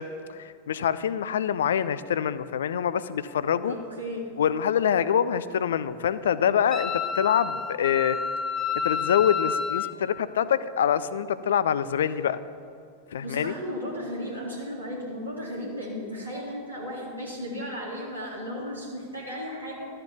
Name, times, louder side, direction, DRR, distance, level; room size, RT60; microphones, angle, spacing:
voice 1, 0.0-3.7 4.4-8.2 8.8-12.4 13.1-13.5, left 8 dB, 60° left, 16 dB, 0.4 m, -25 dB
voice 2, 3.6-4.2 13.2-19.9, equal, 90° right, -8 dB, 2.2 m, -35 dB
Wind instrument woodwind instrument, 6.7-9.9, left 6 dB, 20° left, 0.7 m, -29 dB
13.0 x 6.6 x 7.2 m, 2.5 s
figure-of-eight pair, 90°, 0 cm